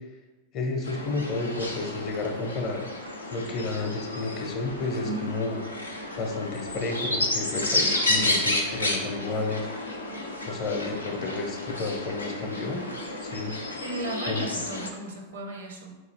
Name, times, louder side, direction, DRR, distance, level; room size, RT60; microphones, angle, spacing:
voice 1, 0.5-2.8 3.3-5.6 6.2-9.7 10.5-12.8 13.2-13.5 14.3-14.5, left 3 dB, 40° left, 3 dB, 0.6 m, -31 dB
sound 1, 0.8-14.9, left 1 dB, 80° left, 0.4 m, -31 dB
voice 2, 8.1-8.4 13.8-16.0, right 2 dB, 70° right, 2 dB, 0.6 m, -35 dB
4.2 x 2.4 x 3.2 m, 1.2 s
figure-of-eight pair, 90°, 0 cm